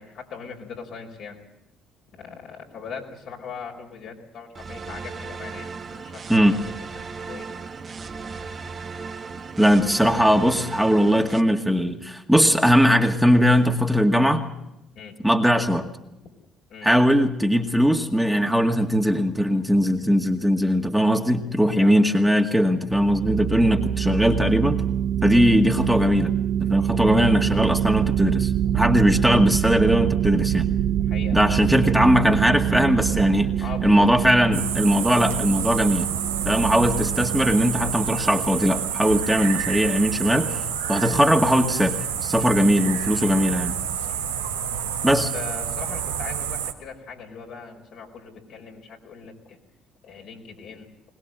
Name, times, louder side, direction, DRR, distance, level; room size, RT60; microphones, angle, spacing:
voice 1, 0.0-1.4 2.1-6.2 6.6-6.7 7.2-7.7 14.9-15.2 16.2-16.3 16.7-16.9 21.7-22.2 25.3-25.5 26.6-26.9 28.6-29.1 31.0-31.5 33.6-34.1 36.5-36.7 42.3-42.6 44.0-44.7 45.0-49.6 50.0-50.9, left 5 dB, 65° left, 1 dB, 4.8 m, -40 dB
sound 1, 4.5-11.4, right 4 dB, 40° right, 1.5 m, -36 dB
voice 2, 9.6-14.5 15.2-15.9 16.8-24.8 25.2-26.3 26.6-30.7 31.3-33.5 33.8-36.1 36.4-43.7 45.0-45.3, equal, 5° right, 3 dB, 2.1 m, -20 dB
sound 2, 22.9-39.2, right 10 dB, 60° right, 1.0 m, -25 dB
sound 3, 34.5-46.7, right 9 dB, 85° right, 1.3 m, -29 dB
22.0 x 20.0 x 7.8 m, 0.88 s
hypercardioid pair, 50°, 0 cm